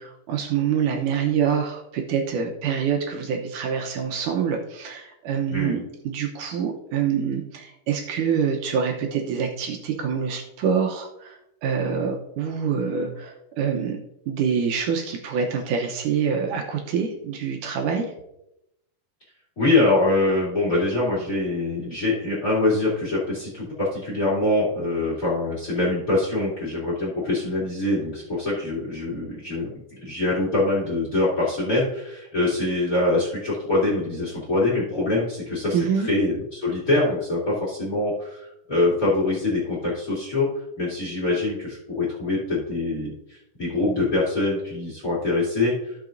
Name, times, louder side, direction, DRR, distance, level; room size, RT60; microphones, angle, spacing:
voice 1, 0.0-18.1 35.7-36.1, right 7 dB, 75° right, 2 dB, 2.4 m, -26 dB
voice 2, 19.6-29.7 30.0-40.5 40.8-45.7, left 2 dB, 30° left, -4 dB, 2.8 m, -24 dB
15.0 x 5.8 x 2.6 m, 0.85 s
omnidirectional pair, 3.7 m